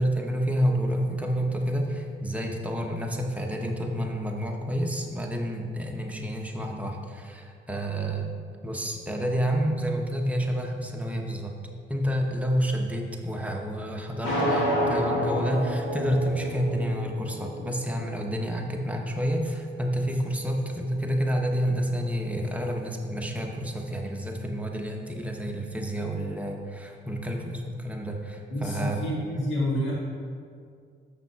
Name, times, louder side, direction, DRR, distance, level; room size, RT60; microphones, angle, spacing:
voice 1, 0.0-8.3 8.6-11.5 11.9-29.0 29.3-29.5, equal, 5° right, 0 dB, 1.0 m, -29 dB
sound 1, 14.2-18.2, equal, 90° left, 2.0 m, -28 dB
voice 2, 28.5-29.9, left 1 dB, 70° left, -5 dB, 1.8 m, -28 dB
6.7 x 5.8 x 4.6 m, 2.2 s
cardioid pair, 90°, 20 cm